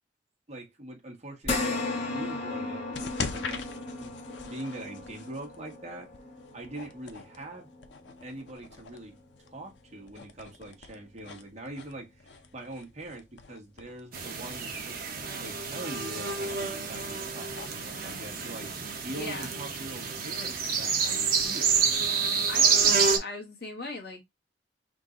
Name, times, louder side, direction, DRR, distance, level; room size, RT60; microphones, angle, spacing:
voice 1, 0.5-4.1 4.4-6.1 6.5-7.7 8.2-9.1 9.5-21.8, right 1 dB, 40° right, 1.5 m, -43 dB
sound 1, 1.4-10.1 10.5-10.6 12.1-12.2, left 2 dB, 40° left, 1.4 m, -37 dB
sound 2, 2.9-18.7, left 5 dB, 85° left, 0.7 m, -44 dB
sound 3, 14.1-23.2, right 5 dB, 55° right, 1.0 m, -28 dB
voice 2, 19.2-19.5 22.4-24.2, left 2 dB, 60° left, 1.4 m, -39 dB
3.8 x 2.6 x 3.8 m
head